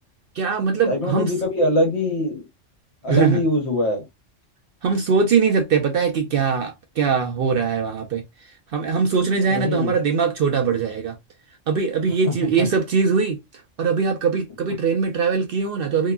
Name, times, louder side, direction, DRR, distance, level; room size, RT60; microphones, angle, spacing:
voice 1, 0.3-1.3 3.1-3.4 4.8-11.2 11.7-13.4 13.8-16.1, right 5 dB, 60° right, 0.6 m, -21 dB
voice 2, 0.9-2.4 3.0-4.0 9.5-9.9, left 1 dB, 65° left, 1.1 m, -22 dB
2.8 x 2.1 x 2.2 m
omnidirectional pair, 1.3 m